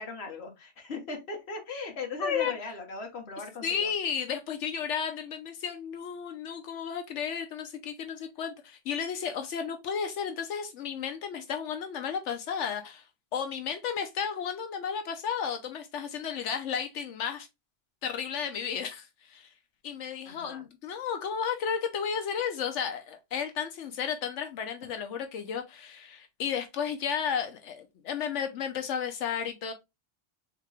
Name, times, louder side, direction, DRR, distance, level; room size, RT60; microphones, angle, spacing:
voice 1, 0.0-3.9 20.2-20.6, left 3 dB, 60° left, 1.4 m, -39 dB
voice 2, 2.2-2.5 3.6-17.5 18.0-19.5 19.8-29.7, left 7 dB, 80° left, 1.0 m, -33 dB
3.6 x 3.6 x 3.2 m
omnidirectional pair, 1.2 m